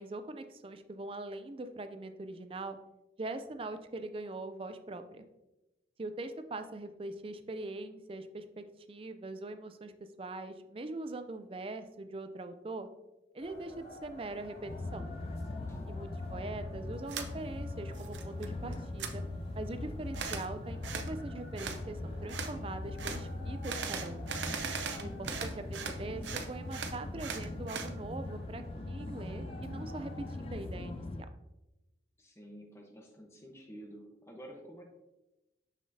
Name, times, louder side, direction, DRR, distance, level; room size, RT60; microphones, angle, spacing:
voice 1, 0.0-2.8 3.2-5.2 6.0-9.9 10.2-12.9 13.3-15.1 15.9-19.2 19.6-24.2 25.0-31.3, right 2 dB, 30° right, 9 dB, 0.4 m, -42 dB
sound 1, 13.4-30.5, left 1 dB, 65° left, 2.0 m, -52 dB
sound 2, 14.6-31.3, left 2 dB, 30° left, 0.4 m, -41 dB
voice 2, 15.6-16.1 24.7-25.2 32.2-34.8, equal, 15° left, 1 dB, 1.0 m, -51 dB
sound 3, 17.1-17.3 17.7-18.5 18.7-19.1 20.1-20.5 20.8-21.1 21.6-21.8 22.3-22.5 23.0-23.2 23.6-26.0 26.2-27.9, right 6 dB, 80° right, 0.7 m, -39 dB
6.7 x 6.2 x 2.7 m, 0.99 s
head